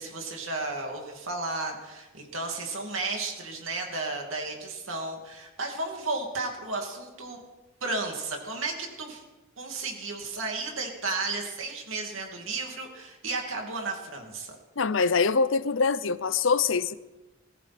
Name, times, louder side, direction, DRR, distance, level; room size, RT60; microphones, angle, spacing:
voice 1, 0.0-7.4 7.8-9.2 9.6-14.6, right 3 dB, 90° right, 2.5 m, -33 dB
voice 2, 14.8-16.9, left 5 dB, 75° left, 0.7 m, -24 dB
22.0 x 14.5 x 4.3 m
head